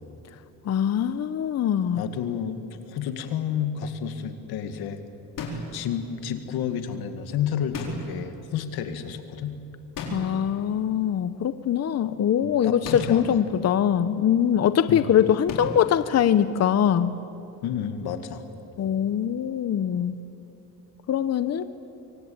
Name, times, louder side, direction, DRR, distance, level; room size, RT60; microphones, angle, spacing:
voice 1, 0.7-2.0 10.1-17.1 18.8-20.1 21.1-21.6, left 9 dB, 45° left, 12 dB, 0.8 m, -22 dB
voice 2, 1.9-5.0 5.5-9.6 12.4-13.4 14.9-15.2 17.6-18.5, left 8 dB, 90° left, 8 dB, 2.2 m, -31 dB
sound 1, 5.4-5.9 7.7-8.3 10.0-10.5 12.8-13.4 15.5-15.9, left 2 dB, 60° left, 4.5 m, -34 dB
25.0 x 24.0 x 8.8 m, 2.9 s
cardioid pair, 125°, 37 cm